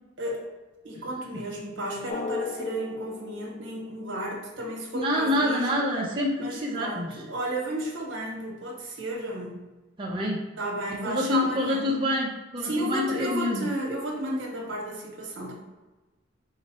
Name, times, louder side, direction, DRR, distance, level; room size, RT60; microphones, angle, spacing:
voice 1, 0.8-5.8 6.4-9.6 10.6-12.0 12.6-15.5, right 1 dB, 75° right, -1 dB, 1.1 m, -33 dB
Drum, 2.1-4.7, left 4 dB, 40° left, 0.4 m, -36 dB
voice 2, 4.9-7.1 10.0-10.4 11.0-13.7, left 1 dB, 25° right, -3 dB, 0.6 m, -27 dB
4.8 x 2.0 x 4.1 m, 1.1 s
head